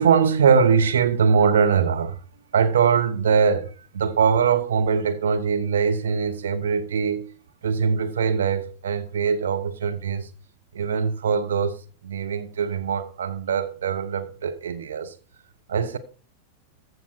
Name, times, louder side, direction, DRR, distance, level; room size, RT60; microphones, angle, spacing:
voice 1, 0.0-2.2 2.5-7.3 7.6-10.3 10.7-11.8 12.0-15.1 15.7-16.0, right 6 dB, 65° right, 1.1 m, -22 dB
14.5 x 6.0 x 4.3 m
figure-of-eight pair, 90°, 0 cm